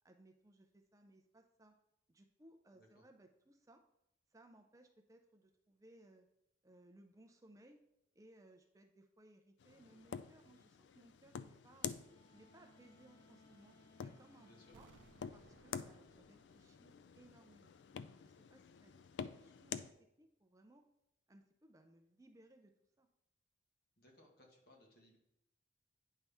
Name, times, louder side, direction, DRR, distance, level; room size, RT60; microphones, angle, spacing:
voice 1, 0.0-1.7 2.1-3.8 4.3-6.3 6.6-7.8 8.1-12.0 12.3-13.8 14.0-14.9 15.3-17.7 18.1-20.8 21.3-22.7 23.0-23.1, right 1 dB, 20° right, 5 dB, 0.5 m, -64 dB
voice 2, 2.7-3.0 14.4-14.7 18.7-18.9 24.0-25.2, left 1 dB, 55° left, 0 dB, 1.6 m, -66 dB
sound 1, 9.6-19.9, left 7 dB, 75° left, 0.3 m, -49 dB
sound 2, 12.0-16.4, left 1 dB, 30° left, 2.9 m, -68 dB
sound 3, 14.7-17.6 17.9-18.0, right 4 dB, 85° right, 0.4 m, -67 dB
9.3 x 5.5 x 3.5 m, 0.82 s
head